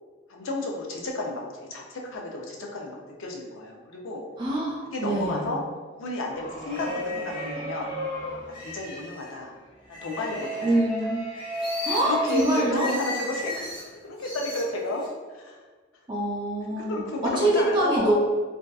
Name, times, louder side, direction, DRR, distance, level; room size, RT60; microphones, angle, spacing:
voice 1, 0.3-1.4 1.7-4.2 4.9-5.6 5.9-7.9 8.6-9.5 9.9-10.7 12.0-13.6 14.0-15.0 15.3-15.6 16.8-18.1, left 2 dB, 85° left, 0 dB, 0.5 m, -32 dB
voice 2, 4.4-5.5 10.6-11.2 11.8-12.9 16.1-18.1, right 1 dB, 25° right, -5 dB, 0.4 m, -25 dB
sound 1, 6.3-9.3 9.9-13.8 14.2-15.1, equal, 25° left, 0.6 m, -34 dB
2.6 x 2.3 x 2.3 m, 1.4 s
head